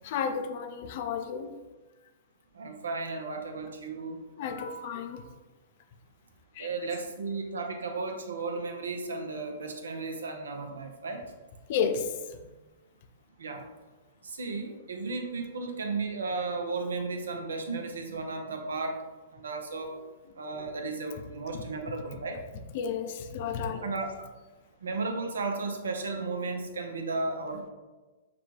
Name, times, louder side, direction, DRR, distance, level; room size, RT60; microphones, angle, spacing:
voice 1, 0.0-1.5 4.4-5.2 6.6-6.7 11.7-12.1 22.7-23.8, left 6 dB, 50° left, 6 dB, 0.4 m, -32 dB
voice 2, 2.5-4.2 6.6-11.2 13.4-13.6 14.2-19.0 19.3-19.9 20.4-22.4 23.8-24.1 24.8-27.7, right 3 dB, 70° right, 5 dB, 0.6 m, -34 dB
5.9 x 2.3 x 3.0 m, 1.2 s
figure-of-eight pair, 110°, 0 cm